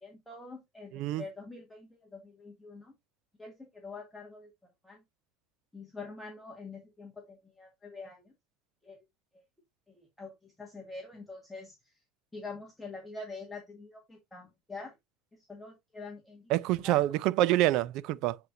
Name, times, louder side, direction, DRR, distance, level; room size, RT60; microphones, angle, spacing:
voice 1, 0.0-2.9 3.4-4.5 4.8-5.0 5.7-8.2 8.8-9.0 9.9-11.7 12.3-14.9 15.5-16.4 16.8-17.0, left 3 dB, 5° left, 1.6 m, -45 dB
voice 2, 0.9-1.2 16.5-18.4, right 15 dB, 60° right, 0.4 m, -27 dB
8.3 x 4.3 x 2.6 m
supercardioid pair, 125°, 0 cm